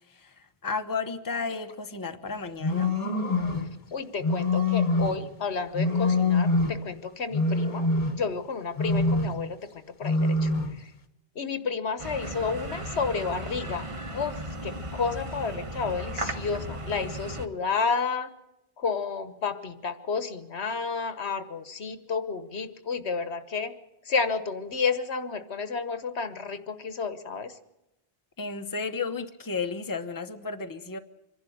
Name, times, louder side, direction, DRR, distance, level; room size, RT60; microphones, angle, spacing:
voice 1, 0.6-2.9 6.1-6.3 28.4-31.0, left 4 dB, 20° left, 7 dB, 1.0 m, -33 dB
sound 1, 2.6-3.7 4.2-5.3 5.7-6.9 7.3-8.4 8.8-9.5 10.0-10.8, left 2 dB, 35° left, 1.3 m, -25 dB
voice 2, 3.9-9.6 10.0-10.5 11.3-13.9 14.1-14.4 14.6-18.3 18.8-23.7 24.1-27.5, left 5 dB, 80° left, 11 dB, 1.5 m, -31 dB
sound 2, 12.0-17.5, right 1 dB, 30° right, 1.3 m, -36 dB
25.5 x 11.5 x 9.4 m, 0.90 s
omnidirectional pair, 1.1 m